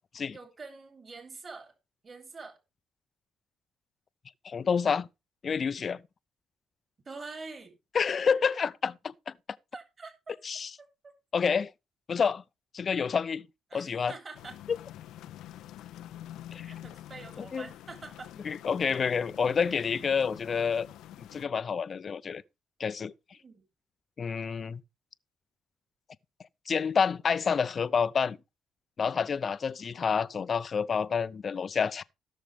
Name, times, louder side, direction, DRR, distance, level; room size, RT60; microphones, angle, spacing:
voice 1, 0.3-1.7 2.0-2.6 7.1-7.8 9.7-10.4 13.7-14.6 16.6-18.3 23.4-23.6, right 4 dB, 35° right, 3.4 m, -45 dB
voice 2, 4.4-5.1 5.4-6.0 7.9-9.3 10.4-10.7 11.3-11.7 12.1-12.4 12.7-13.5 13.7-14.1 14.7-14.8 16.5-16.7 17.4-17.7 18.4-20.9 21.2-22.4 22.8-23.1 24.2-24.8 26.7-28.4 29.0-32.0, left 6 dB, 45° left, 0.6 m, -28 dB
sound 1, 14.3-21.5, left 13 dB, 85° left, 0.6 m, -47 dB
17.0 x 6.4 x 3.5 m
cardioid pair, 90°, 0 cm